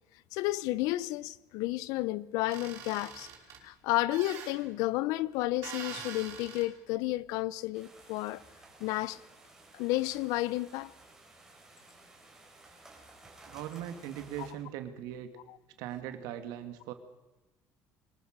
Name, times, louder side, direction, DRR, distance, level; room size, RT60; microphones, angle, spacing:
voice 1, 0.3-3.3 3.6-8.4 8.8-9.2 9.7-10.9 14.4-14.5, left 18 dB, 85° left, 0.7 m, -32 dB
sound 1, 2.5-3.6 4.1-4.5 5.6-6.7, right 8 dB, 55° right, 5.3 m, -44 dB
sound 2, 7.7-14.5, right 2 dB, 10° right, 4.1 m, -55 dB
voice 2, 13.5-15.3 15.8-16.9, right 11 dB, 85° right, 2.2 m, -40 dB
24.0 x 19.5 x 6.7 m
cardioid pair, 165°, 6 cm